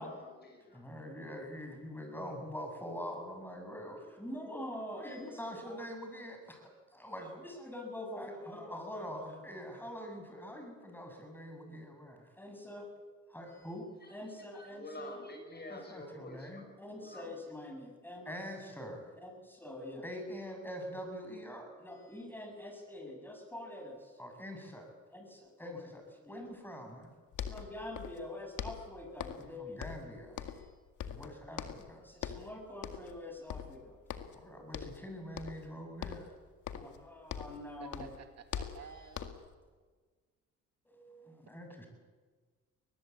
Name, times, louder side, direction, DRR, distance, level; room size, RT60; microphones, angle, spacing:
voice 1, 0.0-0.9 14.0-14.2 14.5-17.3, left 1 dB, 35° left, 5 dB, 5.7 m, -48 dB
voice 2, 0.7-12.9 13.3-15.2 15.7-27.1 27.5-30.7 31.1-34.0 34.3-36.3 36.7-38.1 38.8-39.1 40.8-41.9, left 1 dB, 5° left, 3 dB, 7.4 m, -44 dB
sound 1, 27.0-27.1 27.3-28.3 28.6-29.5 29.8-30.7 31.0-31.9 32.2-32.5 32.8-33.2 33.5-34.4 34.7-35.0 35.4-35.7 36.0-37.6 37.9-39.5, left 9 dB, 75° left, 2.0 m, -42 dB
voice 3, 37.8-39.3, right 7 dB, 60° right, 7 dB, 2.1 m, -51 dB
22.0 x 20.0 x 8.6 m, 1.4 s
cardioid pair, 90°, 30 cm